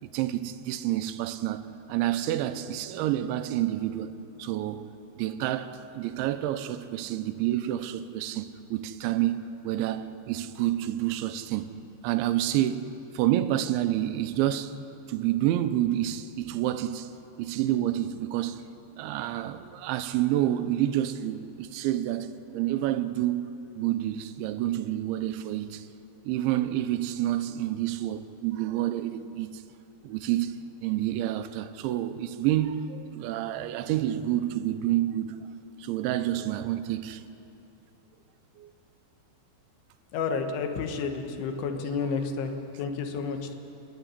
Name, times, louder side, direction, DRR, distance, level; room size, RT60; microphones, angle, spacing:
voice 1, 0.0-4.1 4.4-4.9 5.2-9.4 9.6-11.7 12.0-12.9 13.1-14.7 15.1-17.1 17.4-18.6 19.0-25.9 26.2-29.6 30.0-30.6 30.8-35.4 35.8-37.2 38.6-38.7 41.8-41.9, right 13 dB, 80° right, 3.0 m, -28 dB
voice 2, 40.1-43.5, left 5 dB, 75° left, 3.8 m, -31 dB
29.0 x 10.0 x 9.7 m
omnidirectional pair, 5.4 m